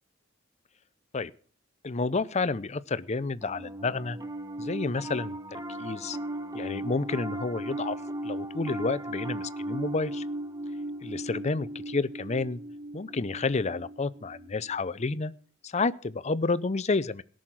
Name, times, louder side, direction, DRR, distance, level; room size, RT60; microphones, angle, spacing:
voice 1, 1.8-4.2 4.6-5.4 5.8-6.2 6.5-8.0 8.2-10.2 11.0-12.6 12.9-15.3 15.6-17.2, left 3 dB, 35° left, 16 dB, 0.6 m, -30 dB
Piano, 3.4-14.9, right 1 dB, 15° right, 0.8 m, -37 dB
17.5 x 6.4 x 7.5 m, 0.41 s
head